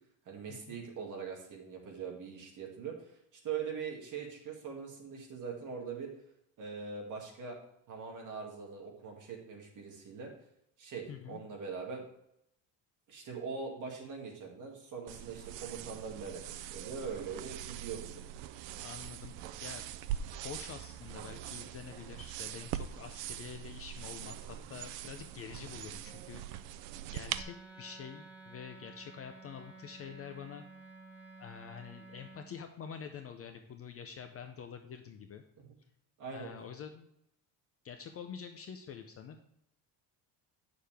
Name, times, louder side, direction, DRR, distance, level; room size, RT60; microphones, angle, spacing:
voice 1, 0.3-6.1 6.6-7.6 7.9-10.3 10.8-12.0 13.1-18.2 35.6-35.7 36.2-36.5, right 6 dB, 40° right, 0 dB, 2.1 m, -42 dB
voice 2, 11.1-11.4 18.8-19.9 20.1-26.4 27.1-30.6 31.4-35.4 36.3-37.1 37.8-39.4, left 7 dB, 35° left, 6 dB, 0.4 m, -47 dB
sound 1, 15.1-27.4, right 11 dB, 75° right, 0.6 m, -42 dB
Wind instrument woodwind instrument, 27.3-32.5, right 3 dB, 5° right, 1.0 m, -53 dB
9.4 x 6.7 x 3.4 m, 0.76 s
cardioid pair, 175°, 45 cm